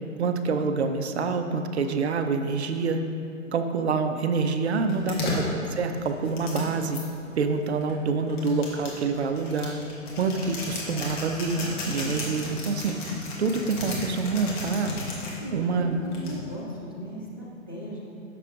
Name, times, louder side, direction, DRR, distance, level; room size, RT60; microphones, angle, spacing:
voice 1, 0.2-3.0 3.5-7.0 7.4-9.8 10.2-14.9 15.5-16.0, right 4 dB, 55° right, 7 dB, 0.6 m, -27 dB
voice 2, 4.8-5.3 15.4-18.0, equal, 20° left, -6 dB, 0.4 m, -37 dB
sound 1, 4.9-7.0 7.8-15.4 16.1-16.6, left 2 dB, 35° left, 1.6 m, -34 dB
10.5 x 6.9 x 2.5 m, 2.6 s
figure-of-eight pair, 130°, 41 cm